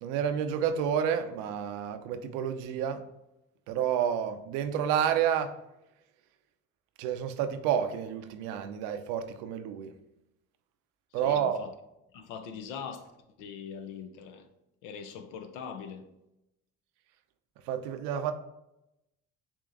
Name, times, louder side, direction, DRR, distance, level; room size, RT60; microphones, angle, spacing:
voice 1, 0.0-3.0 3.7-5.5 7.0-9.9 11.1-11.7 17.7-18.3, right 8 dB, 85° right, 0.5 m, -29 dB
voice 2, 11.1-11.7 12.1-13.1 13.4-14.5 14.8-16.1, left 6 dB, 80° left, 0.7 m, -42 dB
7.0 x 2.9 x 2.5 m
supercardioid pair, 75°, 31 cm